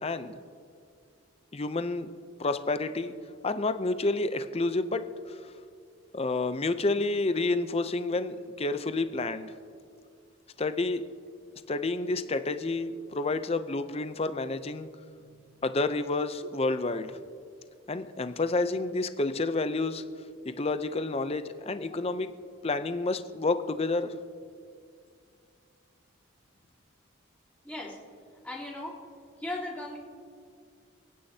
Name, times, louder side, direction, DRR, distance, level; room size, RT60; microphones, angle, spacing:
voice 1, 0.0-0.4 1.5-2.1 2.4-3.1 3.4-5.0 5.3-5.4 6.1-9.5 10.6-11.0 11.7-14.9 15.6-17.2 17.9-20.0 20.5-22.3 22.6-24.2, left 2 dB, 30° left, 10 dB, 0.6 m, -29 dB
voice 2, 15.2-15.6 27.6-28.0 28.4-29.0 29.4-30.0, left 1 dB, 10° left, -8 dB, 3.3 m, -38 dB
29.5 x 9.9 x 2.8 m, 2.2 s
head